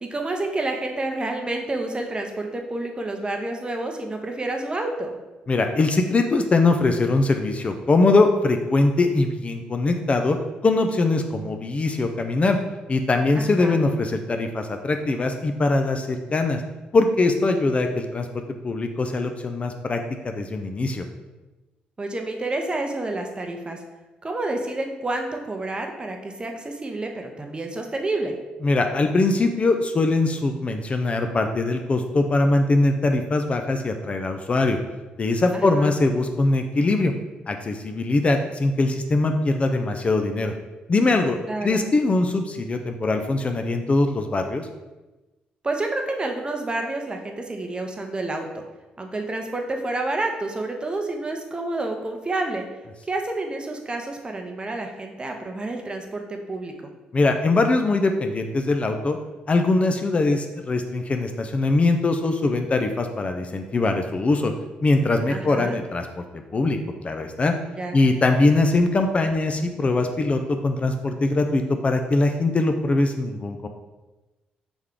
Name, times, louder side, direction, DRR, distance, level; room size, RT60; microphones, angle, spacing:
voice 1, 0.0-5.1 13.4-13.8 22.0-23.8 24.2-28.3 35.5-35.9 41.5-41.8 45.6-48.6 49.0-52.6 53.1-56.9 65.3-65.8 67.8-68.0, right 2 dB, 25° right, 3 dB, 0.7 m, -29 dB
voice 2, 5.5-10.4 10.6-12.6 12.9-16.6 16.9-18.3 18.6-21.0 28.6-34.8 35.2-37.1 37.5-40.5 40.9-44.7 57.1-59.2 59.5-64.5 64.8-66.2 66.5-66.8 67.0-67.5 67.9-73.7, left 2 dB, 35° left, 6 dB, 0.4 m, -22 dB
3.4 x 3.1 x 3.7 m, 1.1 s
supercardioid pair, 65°, 4 cm